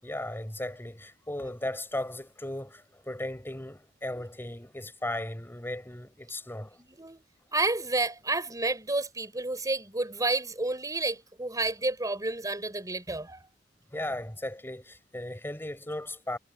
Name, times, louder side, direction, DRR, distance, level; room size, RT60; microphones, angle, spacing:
voice 1, 0.0-6.8 13.9-16.4, left 1 dB, 10° left, 5.0 m, -36 dB
voice 2, 7.5-13.5, right 2 dB, 20° right, 4.7 m, -30 dB
head